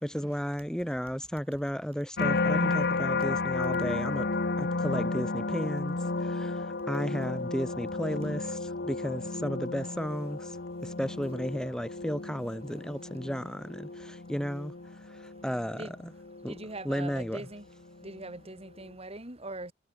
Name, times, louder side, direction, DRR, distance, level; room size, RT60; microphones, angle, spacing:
voice 1, 0.0-4.3 4.6-10.5 10.8-14.7 15.4-16.1 16.4-16.5 16.8-17.4, equal, 5° left, 2.3 m, -34 dB
sound 1, 2.2-17.4 17.9-18.3, left 3 dB, 60° left, 1.2 m, -33 dB
voice 2, 16.5-17.6 18.0-19.7, right 2 dB, 35° right, 7.3 m, -41 dB
head